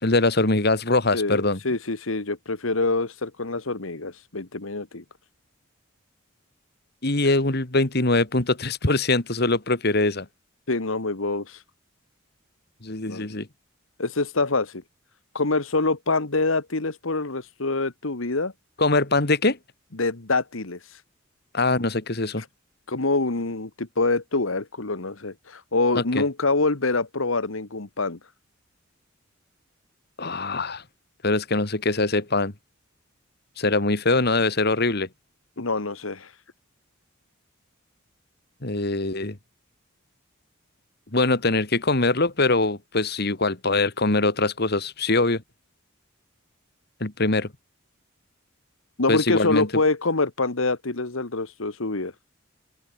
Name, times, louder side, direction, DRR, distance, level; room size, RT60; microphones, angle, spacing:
voice 1, 0.0-1.6 7.0-10.3 12.8-13.5 18.8-19.6 21.5-22.4 26.0-26.2 30.2-30.8 31.2-32.5 33.6-35.1 38.6-39.4 41.1-45.4 47.0-47.5 49.1-49.7, left 2 dB, 50° left, 2.2 m, -22 dB
voice 2, 1.1-5.0 7.2-7.3 10.7-11.6 13.1-13.3 14.0-14.8 15.3-18.5 20.0-21.0 22.9-28.2 35.6-36.3 49.0-52.1, left 3 dB, 80° left, 1.7 m, -25 dB
open air
head